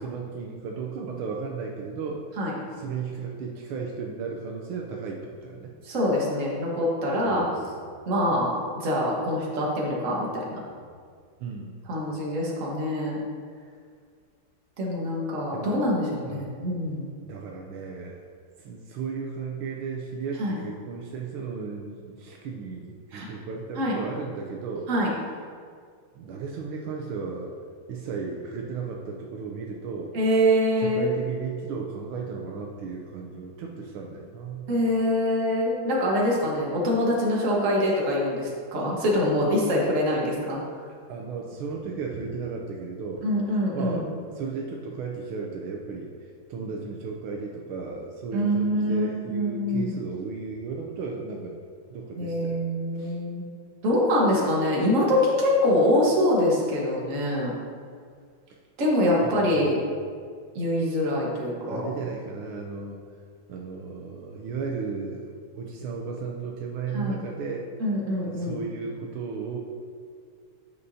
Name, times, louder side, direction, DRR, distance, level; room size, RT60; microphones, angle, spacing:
voice 1, 0.0-2.2 2.7-5.7 7.2-7.7 11.4-11.7 15.5-15.7 16.3-16.5 17.2-18.2 18.6-24.9 26.1-27.5 27.9-30.1 30.8-34.7 40.9-43.2 43.7-44.1 44.3-46.1 46.5-51.6 51.9-52.6 53.0-53.2 58.5-58.6 59.2-59.7 61.7-63.0 63.5-67.7 68.2-69.6, right 5 dB, 80° right, 0 dB, 1.5 m, -35 dB
voice 2, 5.8-7.5 8.1-10.6 11.9-13.2 14.8-17.1 20.4-20.6 23.1-23.3 23.8-23.9 24.9-25.1 30.1-31.1 34.7-40.6 43.2-44.0 48.3-50.0 52.2-53.4 53.8-57.5 58.8-59.8 60.5-61.8 66.9-67.2 67.8-68.6, left 1 dB, 40° right, -4 dB, 1.6 m, -24 dB
9.6 x 6.8 x 2.7 m, 2.1 s
omnidirectional pair, 2.4 m